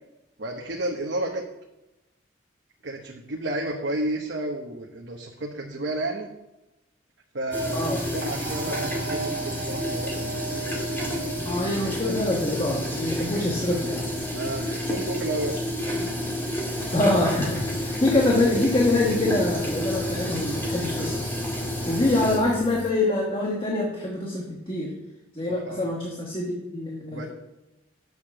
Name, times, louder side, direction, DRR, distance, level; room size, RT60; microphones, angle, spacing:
voice 1, 0.4-1.4 2.8-6.3 7.3-10.4 14.3-15.6 25.7-25.9 27.1-27.3, right 1 dB, 65° right, 0 dB, 0.9 m, -31 dB
sound 1, 7.5-22.4, equal, 10° left, 1.8 m, -30 dB
sound 2, 8.2-12.4, right 4 dB, 45° right, 0.6 m, -36 dB
voice 2, 11.4-14.0 16.9-21.2 21.9-24.9 25.3-27.3, left 2 dB, 30° left, -2 dB, 1.2 m, -25 dB
Engine, 16.7-22.9, left 3 dB, 65° left, 0.7 m, -39 dB
8.1 x 6.7 x 6.0 m, 0.97 s
head